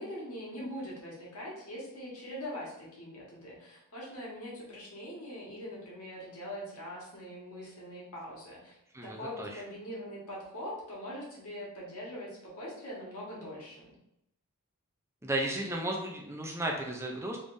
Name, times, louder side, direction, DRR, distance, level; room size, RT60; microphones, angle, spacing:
voice 1, 0.0-8.8 9.0-13.9, equal, 80° left, -5 dB, 1.4 m, -42 dB
voice 2, 8.9-9.6 15.2-17.4, right 1 dB, 10° right, 0 dB, 0.5 m, -34 dB
3.4 x 3.4 x 2.6 m, 0.81 s
head